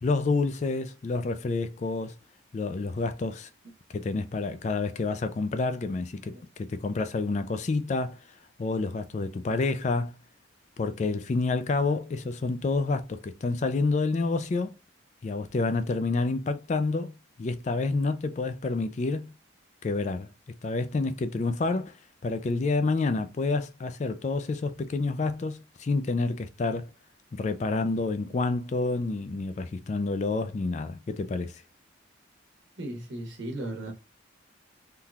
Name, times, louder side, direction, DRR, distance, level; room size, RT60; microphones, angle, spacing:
voice 1, 0.0-2.1 2.5-3.5 3.9-8.2 8.6-10.1 10.8-14.7 15.2-19.3 19.8-20.3 20.6-21.9 22.2-26.9 27.3-31.6, left 3 dB, 35° left, 0.3 m, -28 dB
voice 2, 32.8-33.9, right 1 dB, 60° right, 1.1 m, -36 dB
3.7 x 2.8 x 2.4 m
head